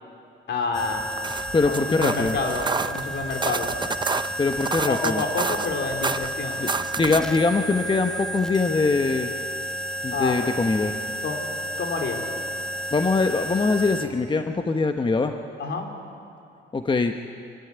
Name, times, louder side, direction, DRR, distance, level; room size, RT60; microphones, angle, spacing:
voice 1, 0.5-1.1 1.6-3.7 4.9-6.6 10.1-10.4 11.2-11.4 11.8-12.3 15.6-15.9, left 4 dB, 65° left, 3 dB, 3.5 m, -28 dB
sound 1, 0.7-14.1, equal, 5° left, 1.4 m, -32 dB
sound 2, 1.0-7.4, right 4 dB, 20° right, 0.6 m, -30 dB
voice 2, 1.5-2.4 4.4-5.2 6.6-6.7 7.0-9.3 10.0-10.9 12.9-15.3 16.7-17.1, left 3 dB, 25° left, 6 dB, 1.1 m, -23 dB
25.0 x 16.0 x 9.6 m, 2.6 s
cardioid pair, 90°, 20 cm